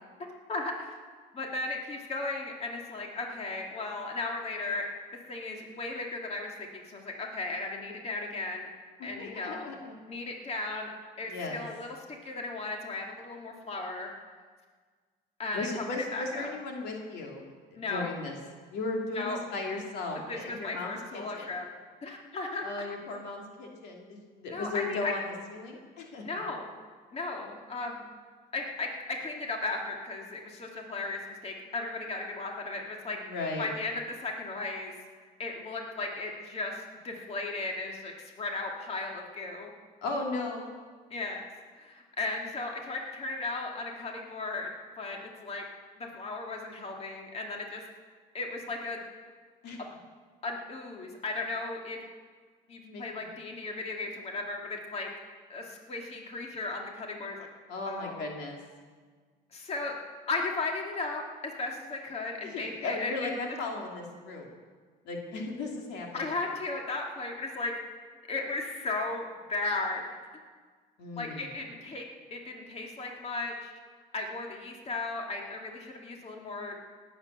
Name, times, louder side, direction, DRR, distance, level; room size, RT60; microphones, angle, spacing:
voice 1, 0.5-0.9 1.3-4.9 5.3-8.7 9.0-9.7 10.1-10.9 11.2-14.1 15.4-15.8 16.1-16.5 17.7-18.1 19.1-19.4 20.1-21.7 22.0-22.7 24.5-25.1 26.2-26.7 27.1-28.1 28.5-33.2 33.6-34.9 35.4-39.7 41.1-41.5 41.7-44.7 45.0-45.6 46.0-47.8 48.3-49.0 50.4-52.0 52.7-55.1 55.5-57.4 57.9-58.3 59.5-60.0 60.3-63.3 66.1-67.7 68.3-70.0 71.2-72.0 72.3-73.7 74.1-76.8, left 3 dB, 35° left, 1 dB, 2.3 m, -36 dB
voice 2, 9.0-9.9 11.2-11.6 15.5-18.3 18.7-21.5 22.6-25.2 25.5-26.2 33.1-33.7 40.0-40.7 49.6-49.8 52.8-53.0 57.7-58.6 62.4-64.5 65.0-66.1 71.0-71.5, left 3 dB, 85° left, 0 dB, 2.7 m, -36 dB
18.5 x 8.2 x 6.8 m, 1.5 s
cardioid pair, 110°, 17 cm